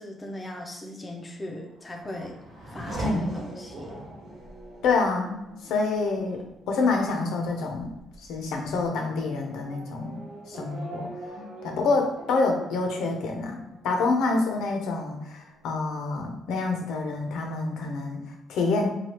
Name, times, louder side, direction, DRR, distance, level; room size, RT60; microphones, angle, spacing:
voice 1, 0.0-2.4 2.7-3.9 11.4-11.5, left 1 dB, 15° left, 1 dB, 0.4 m, -39 dB
Race car auto racing / Accelerating revving vroom, 1.5-14.7 15.1-15.8, right 1 dB, 80° right, 1.3 m, -41 dB
voice 2, 4.8-10.2 10.5-11.1 11.6-18.9, left 3 dB, 80° left, 2 dB, 0.5 m, -27 dB
3.2 x 2.3 x 2.8 m, 0.87 s
cardioid pair, 165°, 0 cm